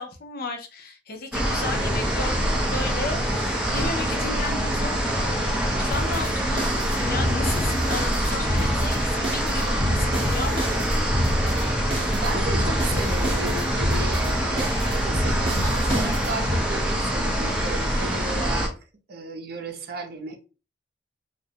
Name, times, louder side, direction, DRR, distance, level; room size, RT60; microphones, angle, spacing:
voice 1, 0.0-10.7, left 3 dB, 55° left, 0.5 m, -34 dB
sound 1, 1.3-18.7, equal, 5° right, 0.5 m, -25 dB
sound 2, 4.7-13.4 13.7-13.8 14.2-17.6, equal, 15° left, 1.3 m, -42 dB
sound 3, 5.9-16.6, equal, 30° right, 0.8 m, -28 dB
voice 2, 12.1-18.7 19.1-20.4, right 3 dB, 55° right, 0.5 m, -34 dB
2.4 x 2.1 x 2.7 m
head